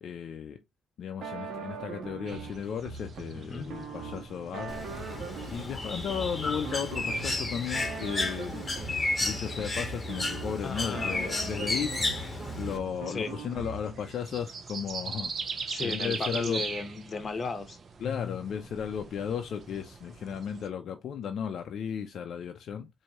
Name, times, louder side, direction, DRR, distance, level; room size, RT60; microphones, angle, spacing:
voice 1, 0.0-0.6 1.0-4.7 5.5-8.6 9.2-12.1 12.6-15.3 15.6-16.6 18.0-22.9, left 8 dB, 65° left, 0.5 m, -35 dB
sound 1, 1.2-14.1, right 4 dB, 70° right, 1.1 m, -41 dB
sound 2, 2.3-20.7, right 5 dB, 45° right, 0.8 m, -43 dB
Bird, 4.7-12.8, left 2 dB, 25° left, 1.4 m, -33 dB
voice 2, 10.6-11.2 13.1-13.3 15.7-17.8, left 4 dB, 40° left, 1.0 m, -35 dB
4.4 x 2.7 x 2.8 m
cardioid pair, 90°, 0 cm